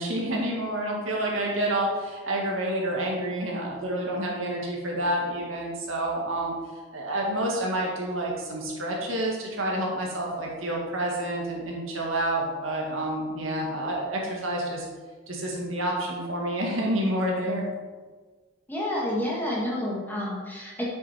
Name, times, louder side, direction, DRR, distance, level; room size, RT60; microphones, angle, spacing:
voice 1, 0.0-6.5 6.9-14.9 15.3-17.6, right 1 dB, 85° right, -2 dB, 2.0 m, -28 dB
voice 2, 18.7-20.8, left 1 dB, 10° left, -4 dB, 1.7 m, -29 dB
8.0 x 7.0 x 4.4 m, 1.4 s
head